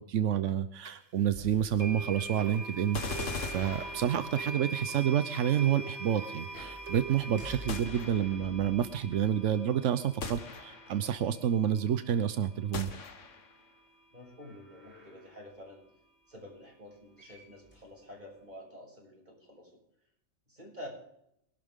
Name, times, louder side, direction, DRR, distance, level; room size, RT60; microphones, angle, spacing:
voice 1, 0.0-12.9, right 9 dB, 90° right, 12 dB, 1.1 m, -29 dB
sound 1, 0.8-0.9 1.8-12.8, right 3 dB, 70° right, 1.9 m, -43 dB
sound 2, 1.3-2.4 3.5-4.6 6.4-10.0 10.9-11.0 14.2-15.5 16.9-17.0 17.2-18.4, equal, 10° left, 6.1 m, -51 dB
sound 3, 2.9-4.6 7.7-8.6 10.2-11.1 12.7-13.6, left 4 dB, 90° left, 1.7 m, -40 dB
voice 2, 14.1-15.8 16.3-19.7 20.5-20.9, left 1 dB, 40° right, -1 dB, 7.1 m, -49 dB
23.5 x 12.0 x 3.7 m, 0.76 s
omnidirectional pair, 1.2 m